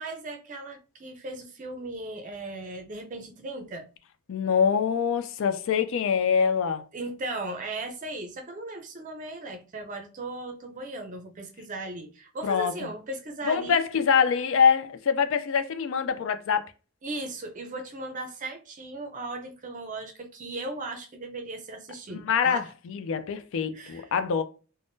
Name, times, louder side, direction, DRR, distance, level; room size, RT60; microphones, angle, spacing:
voice 1, 0.0-3.9 6.9-13.8 17.0-22.7 23.7-24.1, right 2 dB, 40° right, 0.5 m, -37 dB
voice 2, 4.3-6.8 12.4-12.9 13.4-16.6 22.1-24.4, left 6 dB, 65° left, 0.4 m, -24 dB
3.5 x 2.1 x 2.6 m
head